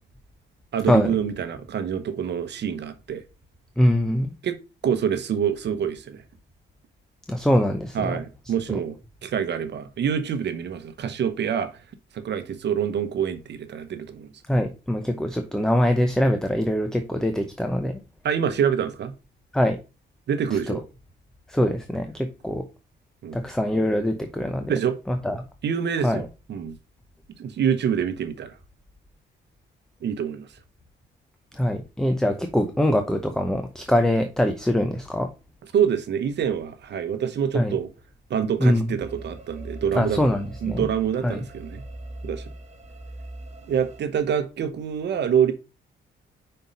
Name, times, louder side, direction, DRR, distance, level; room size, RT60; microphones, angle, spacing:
voice 1, 0.7-3.2 4.4-4.6 4.8-6.2 7.9-11.7 12.1-14.3 18.2-19.1 20.3-20.8 23.2-23.4 24.7-25.0 25.6-26.2 26.5-26.8 27.4-28.6 30.0-30.5 35.7-37.9 38.3-40.2 40.6-41.8 42.2-42.5 43.7-45.5, right 8 dB, 60° right, 1.0 m, -26 dB
voice 2, 3.8-4.3 7.3-8.2 8.7-8.8 14.5-18.0 19.5-19.8 20.7-20.8 21.5-22.6 23.3-24.7 25.1-25.4 26.0-26.2 31.5-35.3 37.5-37.8 38.6-38.8 39.9-40.9 41.2-41.4, left 1 dB, 5° left, 0.8 m, -23 dB
sound 1, 39.0-44.0, right 1 dB, 35° right, 1.5 m, -40 dB
5.4 x 4.4 x 5.3 m
cardioid pair, 90°, 20 cm